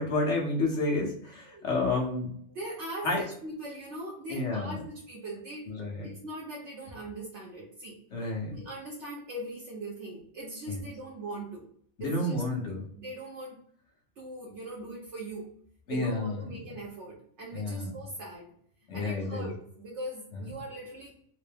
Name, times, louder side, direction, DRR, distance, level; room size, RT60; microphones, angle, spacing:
voice 1, 0.0-2.4 3.0-3.3 4.3-4.8 5.7-6.1 8.1-8.6 10.7-10.8 12.0-12.8 15.9-16.4 17.5-17.9 18.9-19.5, left 2 dB, 75° left, 0 dB, 1.3 m, -30 dB
voice 2, 2.5-5.6 6.0-7.9 8.5-11.7 12.0-12.3 13.0-13.6 14.2-15.5 15.9-18.5 18.9-21.1, right 1 dB, 70° right, -4 dB, 1.2 m, -40 dB
3.8 x 2.1 x 3.4 m, 0.63 s
omnidirectional pair, 1.2 m